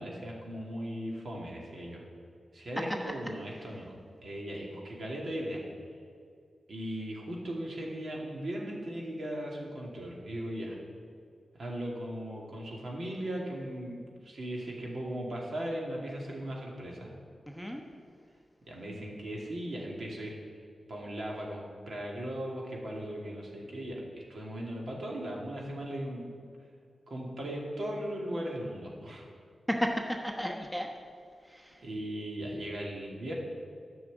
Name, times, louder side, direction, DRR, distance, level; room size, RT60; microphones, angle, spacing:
voice 1, 0.0-2.0 2.5-5.6 6.7-10.8 11.6-17.1 18.7-20.3 20.9-26.3 27.1-29.3 31.8-33.3, right 1 dB, 65° right, -2 dB, 2.6 m, -38 dB
voice 2, 17.5-17.8 29.7-30.9 31.4-31.8, equal, 5° right, 1 dB, 1.1 m, -34 dB
10.5 x 6.3 x 7.9 m, 2.3 s
cardioid pair, 65°, 0 cm